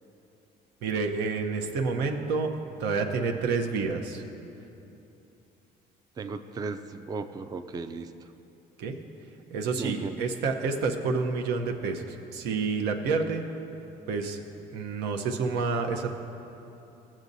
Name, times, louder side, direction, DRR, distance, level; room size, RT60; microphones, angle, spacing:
voice 1, 0.8-2.5 2.8-4.2 8.8-9.0 9.5-13.5 14.1-14.4 14.7-16.1, right 4 dB, 85° right, 3 dB, 0.8 m, -29 dB
voice 2, 6.2-8.1 9.8-10.2, right 4 dB, 25° right, 8 dB, 0.4 m, -35 dB
16.5 x 7.3 x 2.7 m, 2.9 s
cardioid pair, 110°, 17 cm